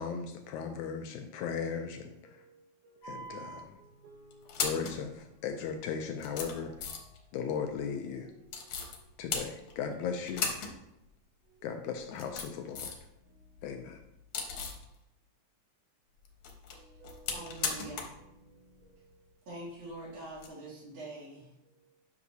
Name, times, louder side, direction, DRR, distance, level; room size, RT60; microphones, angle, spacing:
voice 1, 0.0-2.4 3.0-3.8 4.6-6.7 7.3-8.3 9.2-10.5 11.6-12.9 13.6-14.0, left 6 dB, 85° left, 1.7 m, -37 dB
voice 2, 2.2-4.7 5.9-7.2 7.8-8.9 11.5-12.4 13.2-13.6 16.7-18.1 18.4-19.4 21.6-22.0, right 4 dB, 85° right, 1.4 m, -58 dB
sound 1, 3.0-3.6 4.3-5.0 5.7-5.8 6.2-7.2 8.5-9.0 9.3-9.9 10.3-10.8 11.0-11.1 12.0-13.1 13.4-14.9 16.3-18.2 18.5-18.6 20.3-20.5, left 5 dB, 60° left, 1.9 m, -37 dB
voice 3, 17.3-18.1 19.5-21.5, right 1 dB, 65° right, 3.9 m, -44 dB
10.5 x 6.0 x 2.7 m
omnidirectional pair, 3.9 m